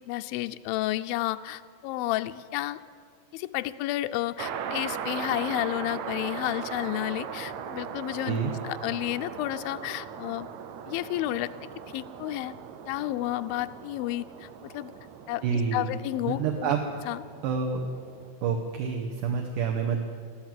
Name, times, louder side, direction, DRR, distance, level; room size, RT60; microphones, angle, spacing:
voice 1, 0.0-2.8 3.3-8.4 8.6-10.5 10.9-12.5 12.9-14.9 15.3-16.7 17.1-17.2, left 16 dB, 85° left, 9 dB, 2.3 m, -31 dB
sound 1, 4.4-18.3, right 7 dB, 85° right, 1.6 m, -39 dB
voice 2, 15.4-15.9 16.3-16.8 17.4-17.8 18.4-20.0, right 6 dB, 70° right, 2 dB, 2.3 m, -28 dB
13.5 x 11.0 x 9.0 m, 2.2 s
omnidirectional pair, 4.3 m